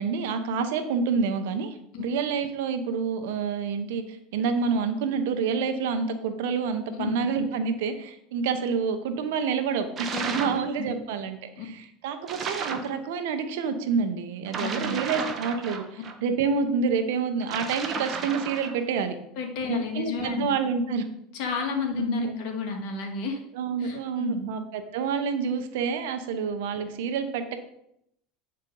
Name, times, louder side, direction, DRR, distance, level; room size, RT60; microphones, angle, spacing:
voice 1, 0.0-19.2 19.7-21.1 21.9-22.4 23.5-27.6, right 5 dB, 80° right, 8 dB, 1.0 m, -28 dB
sound 1, 10.0-10.7 12.3-12.9 14.5-16.2 17.4-18.8, right 5 dB, 35° right, 1.2 m, -33 dB
voice 2, 10.1-10.9 11.6-11.7 14.6-14.9 19.4-20.5 21.3-23.4 23.8-24.5, left 5 dB, 65° left, 2 dB, 2.0 m, -32 dB
8.8 x 4.4 x 5.4 m, 0.77 s
supercardioid pair, 105°, 0 cm